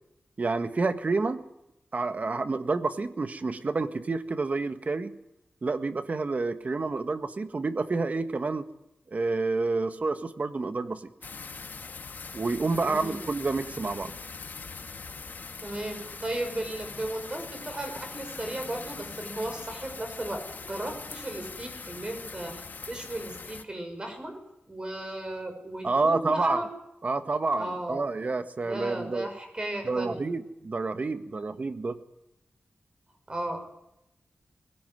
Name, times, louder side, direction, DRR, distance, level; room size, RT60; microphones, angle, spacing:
voice 1, 0.4-1.4 1.9-5.1 5.6-8.6 9.1-11.0 12.3-14.1 25.8-26.6 27.0-29.3 29.8-32.0, right 3 dB, 50° right, 9 dB, 1.7 m, -29 dB
sound 1, 11.2-23.6, left 4 dB, 60° left, 1.6 m, -42 dB
voice 2, 12.7-13.2 15.6-26.7 27.6-28.1 28.6-30.2 33.3-33.8, right 1 dB, 30° right, 5 dB, 6.3 m, -35 dB
22.0 x 17.0 x 9.4 m, 0.85 s
wide cardioid pair, 90°, 3 cm